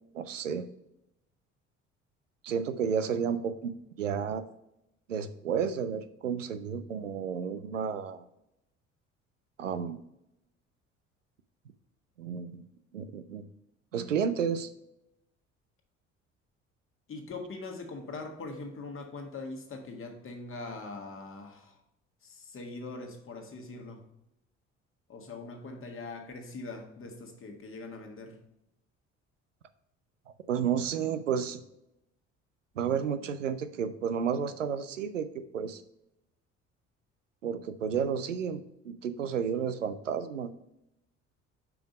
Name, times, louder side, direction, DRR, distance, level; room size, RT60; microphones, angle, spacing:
voice 1, 0.1-0.7 2.4-4.4 5.1-8.3 9.6-10.0 12.2-12.7 12.9-13.4 13.9-14.7 30.5-31.6 32.8-35.8 37.4-40.5, right 7 dB, 85° right, 11 dB, 0.5 m, -32 dB
voice 2, 17.1-21.8 22.2-24.1 25.1-28.4, left 3 dB, 35° left, 3 dB, 1.6 m, -42 dB
6.0 x 5.1 x 5.0 m, 0.85 s
figure-of-eight pair, 50°, 37 cm